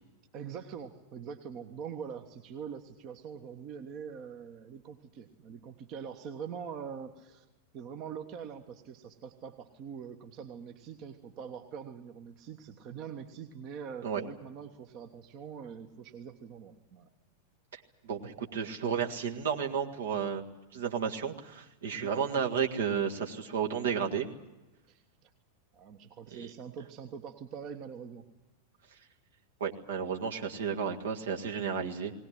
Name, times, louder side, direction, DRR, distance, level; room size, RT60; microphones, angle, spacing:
voice 1, 0.3-7.5 7.7-17.1 21.9-22.4 24.9-25.0 25.7-28.3, right 7 dB, 40° right, 7 dB, 1.3 m, -44 dB
voice 2, 17.7-20.4 20.7-24.3 26.3-26.5 29.6-32.1, right 7 dB, 65° right, 3 dB, 1.8 m, -32 dB
19.5 x 19.0 x 10.0 m, 1.0 s
figure-of-eight pair, 90°, 0 cm